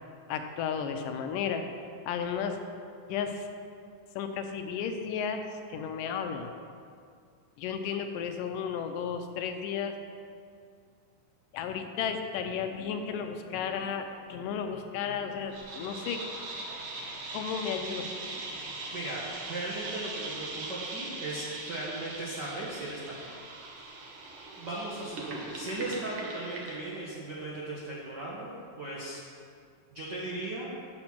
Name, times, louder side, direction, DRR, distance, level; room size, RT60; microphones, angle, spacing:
voice 1, 0.3-1.6 2.1-2.6 3.1-3.5 4.2-6.5 7.6-10.0 11.5-16.2 17.3-18.1, left 7 dB, 80° left, 6 dB, 2.2 m, -33 dB
sound 1, 15.5-27.0, right 2 dB, 70° right, 1.2 m, -40 dB
voice 2, 18.9-23.3 24.6-29.2 29.9-30.8, right 2 dB, 85° right, -5 dB, 0.9 m, -37 dB
7.8 x 7.5 x 5.9 m, 2.3 s
omnidirectional pair, 3.9 m